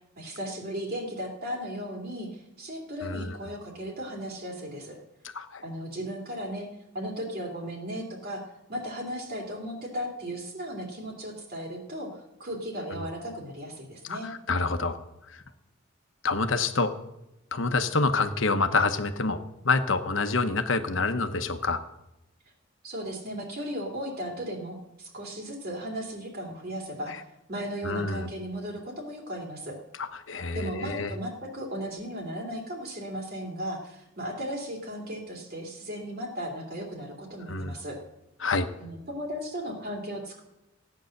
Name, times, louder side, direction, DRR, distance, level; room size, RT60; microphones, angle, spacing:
voice 1, 0.2-5.0 5.6-6.7 6.9-8.4 8.7-14.3 22.8-27.1 27.5-29.8 30.5-38.0 38.8-40.4, equal, 50° right, 0 dB, 3.0 m, -36 dB
voice 2, 3.0-3.4 5.3-5.6 12.9-13.1 14.1-15.0 15.3-15.4 16.2-16.9 17.5-21.8 27.1-27.2 27.8-28.3 30.0-31.1 37.5-37.8 38.4-38.7, left 3 dB, 65° left, 8 dB, 1.1 m, -27 dB
15.5 x 9.2 x 6.6 m, 0.90 s
head